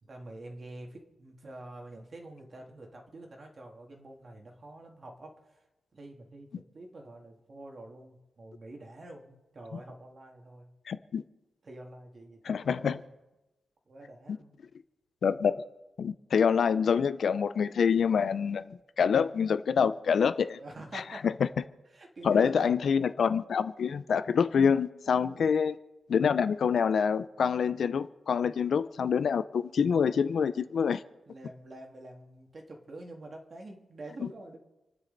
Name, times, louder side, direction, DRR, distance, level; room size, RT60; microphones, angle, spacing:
voice 1, 0.0-5.6 5.9-10.7 11.6-13.0 13.9-14.6 20.6-21.2 21.9-22.8 25.1-25.6 28.4-28.5 31.3-34.6, right 2 dB, 35° right, 2 dB, 2.2 m, -47 dB
voice 2, 10.9-11.2 12.4-13.0 15.2-15.6 16.0-20.6 20.9-21.3 22.2-25.8 26.1-31.0 34.2-34.3, left 6 dB, 60° left, 12 dB, 0.5 m, -26 dB
28.5 x 9.8 x 4.0 m, 1.0 s
wide cardioid pair, 160°, 0 cm